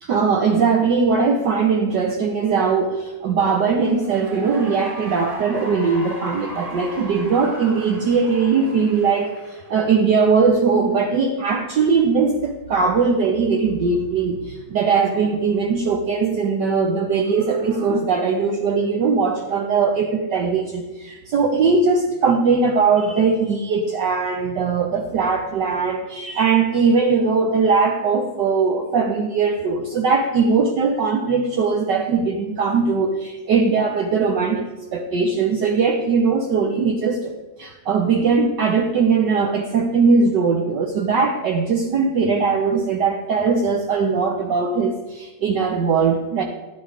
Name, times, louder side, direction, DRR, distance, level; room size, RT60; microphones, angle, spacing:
voice 1, 0.0-37.3 37.6-46.4, right 5 dB, 65° right, 2 dB, 1.6 m, -20 dB
Cheering / Applause, 3.7-10.3, right 1 dB, 20° right, 2.1 m, -37 dB
15.0 x 9.6 x 5.0 m, 1.2 s
omnidirectional pair, 2.1 m